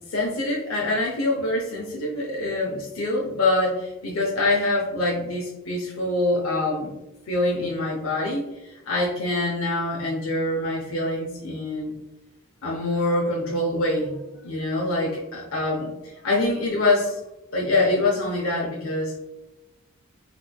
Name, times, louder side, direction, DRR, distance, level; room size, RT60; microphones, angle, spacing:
voice 1, 0.0-6.9 7.3-8.5 8.9-11.9 12.6-14.2 14.4-17.2 17.5-19.2, left 2 dB, 75° left, -3 dB, 0.7 m, -25 dB
4.1 x 3.0 x 2.3 m, 0.95 s
head